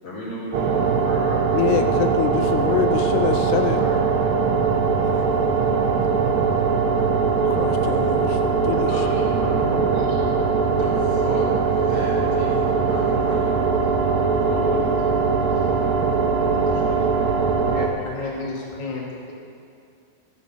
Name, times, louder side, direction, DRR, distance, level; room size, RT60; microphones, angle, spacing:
voice 1, 0.0-2.0 2.4-2.7 8.0-15.9 16.4-17.4 17.8-18.5 18.9-19.0, left 1 dB, 35° left, -7 dB, 4.3 m, -37 dB
sound 1, 0.5-17.9, right 5 dB, 85° right, 3.3 m, -21 dB
voice 2, 1.5-3.8 7.4-9.1, left 9 dB, 85° left, 6 dB, 2.7 m, -25 dB
voice 3, 3.7-4.0 16.4-17.0 17.6-19.3, left 3 dB, 15° left, -5 dB, 1.6 m, -33 dB
15.0 x 7.5 x 7.9 m, 2.5 s
omnidirectional pair, 4.6 m